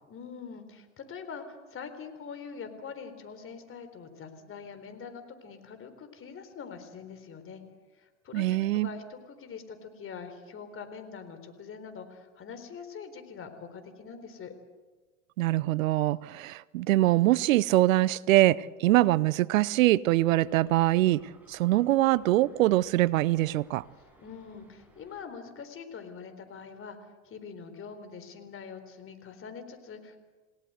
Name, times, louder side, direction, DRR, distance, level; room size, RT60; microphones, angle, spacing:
voice 1, 0.1-7.6 7.9-14.5 24.0-27.0 27.2-30.2, left 6 dB, 30° left, 8 dB, 4.0 m, -44 dB
voice 2, 8.3-8.9 15.4-23.8, right 16 dB, 75° right, 21 dB, 0.7 m, -23 dB
sound 1, 20.2-25.2, right 1 dB, 5° right, 7.3 m, -60 dB
29.0 x 18.0 x 8.0 m, 1.3 s
hypercardioid pair, 100°, 40 cm